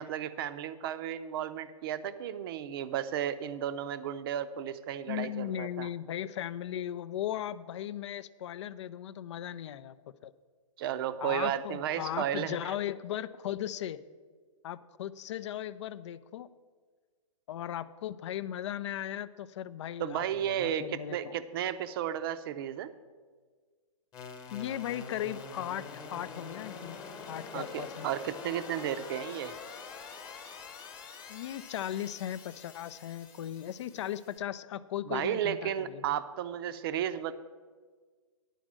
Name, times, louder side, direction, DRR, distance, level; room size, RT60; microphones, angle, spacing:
voice 1, 0.0-5.9 10.8-12.7 20.0-22.9 27.5-29.5 35.1-37.3, right 10 dB, 45° right, 12 dB, 0.6 m, -33 dB
voice 2, 5.1-10.0 10.2-10.3 11.2-14.0 14.6-16.5 17.5-21.4 24.5-27.0 27.3-28.1 31.3-36.2, left 11 dB, 55° left, 16 dB, 0.5 m, -37 dB
sound 1, 24.1-34.4, left 5 dB, 20° left, 1.1 m, -45 dB
10.0 x 5.2 x 7.4 m, 1.5 s
hypercardioid pair, 135°, 17 cm